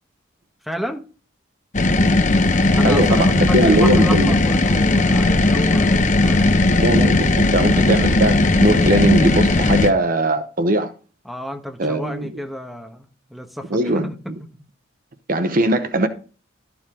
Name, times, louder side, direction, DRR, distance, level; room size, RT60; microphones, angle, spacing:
voice 1, 0.6-1.0 2.7-6.6 11.2-14.1, equal, ahead, 1.3 m, -31 dB
sound 1, 1.7-9.9, left 2 dB, 40° left, 0.9 m, -16 dB
voice 2, 2.8-4.3 6.8-10.9 11.8-12.4 13.7-14.1 15.3-16.1, right 1 dB, 50° right, 0.9 m, -20 dB
13.0 x 7.0 x 3.8 m
head